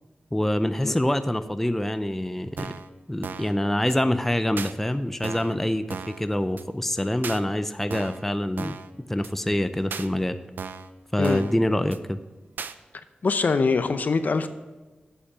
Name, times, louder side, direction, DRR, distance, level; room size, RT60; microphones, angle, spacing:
voice 1, 0.3-2.7 3.1-8.8 9.1-10.4 11.1-12.2, left 1 dB, 10° left, 10 dB, 0.5 m, -25 dB
sound 1, 2.6-2.9 3.2-3.6 3.9-4.0 4.6-4.7 5.2-5.6 5.9-6.2 6.6-6.7 7.2-7.4 7.9-8.2 8.6-8.9 9.2-9.3 9.9-10.1 10.6-10.9 11.2-11.6 11.9-12.0 12.6-12.7, right 6 dB, 85° right, 0.5 m, -36 dB
voice 2, 13.2-14.5, left 4 dB, 60° left, 10 dB, 0.7 m, -23 dB
8.1 x 6.5 x 6.0 m, 1.2 s
cardioid pair, 70°, 3 cm